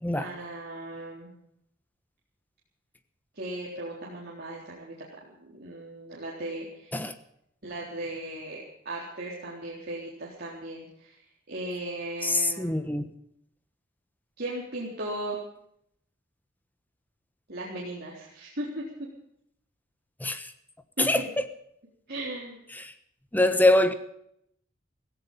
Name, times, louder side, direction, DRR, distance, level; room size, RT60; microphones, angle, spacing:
voice 1, 0.2-1.3 3.4-4.9 5.4-6.9 7.6-11.2 11.5-12.7 14.4-15.4 17.5-18.8 21.0-21.3 22.1-22.6, right 1 dB, 50° right, -4 dB, 3.8 m, -37 dB
voice 2, 12.2-13.1 20.2-20.5 21.0-21.4 22.7-22.9 23.3-23.9, left 2 dB, 10° left, 10 dB, 1.2 m, -24 dB
17.0 x 15.5 x 5.5 m, 0.73 s
head